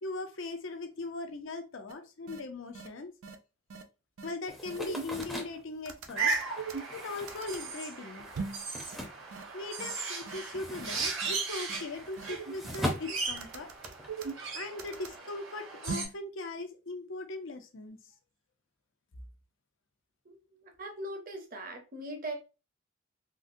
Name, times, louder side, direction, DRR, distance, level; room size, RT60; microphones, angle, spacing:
voice 1, 0.0-3.1 4.2-6.3 6.9-8.3 9.5-13.7 14.5-18.0, left 2 dB, 65° left, 0.6 m, -39 dB
sound 1, 1.9-2.0 2.3-2.4 2.7-2.9 3.2-3.4 3.7-3.8 4.2-4.3 4.7-5.5 5.9-7.6 8.3-8.6 8.9-9.0 9.3-9.4 9.8-9.9 10.3-10.4 10.7-10.9 11.2-11.3 11.7-11.8 12.2-13.0 13.4-15.2 15.9-16.1, right 5 dB, 85° right, 0.5 m, -40 dB
sound 2, 4.5-9.9 10.2-14.1, equal, ahead, 0.6 m, -41 dB
sound 3, 6.2-16.1, right 4 dB, 70° right, 0.9 m, -37 dB
voice 2, 20.2-22.3, right 1 dB, 40° right, 0.8 m, -41 dB
3.8 x 2.1 x 2.6 m
head